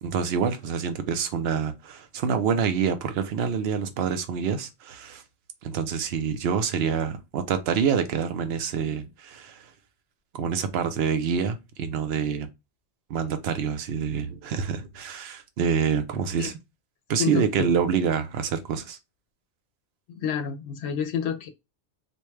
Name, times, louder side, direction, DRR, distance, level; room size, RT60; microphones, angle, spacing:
voice 1, 0.0-5.2 5.6-9.7 10.3-12.5 13.1-16.5 17.1-19.0, right 7 dB, 70° right, 0.9 m, -27 dB
voice 2, 17.2-17.7 20.1-21.5, left 7 dB, 75° left, 0.8 m, -29 dB
4.4 x 2.2 x 3.2 m
omnidirectional pair, 1.1 m